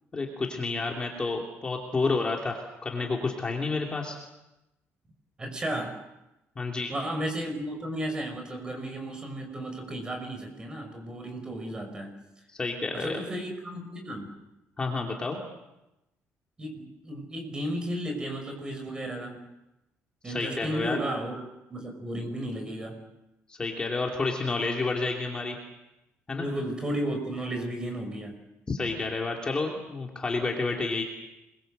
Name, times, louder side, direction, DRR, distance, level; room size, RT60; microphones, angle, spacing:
voice 1, 0.1-4.2 6.6-6.9 12.5-13.2 14.8-15.4 20.2-21.0 23.5-25.6 26.3-26.5 28.7-31.1, left 3 dB, 20° left, 0 dB, 2.8 m, -30 dB
voice 2, 5.4-5.9 6.9-12.1 12.9-14.3 16.6-19.4 20.2-21.4 21.7-23.0 26.4-28.4, right 1 dB, 15° right, 5 dB, 5.6 m, -34 dB
28.0 x 22.0 x 7.9 m, 0.94 s
cardioid pair, 175°, 5 cm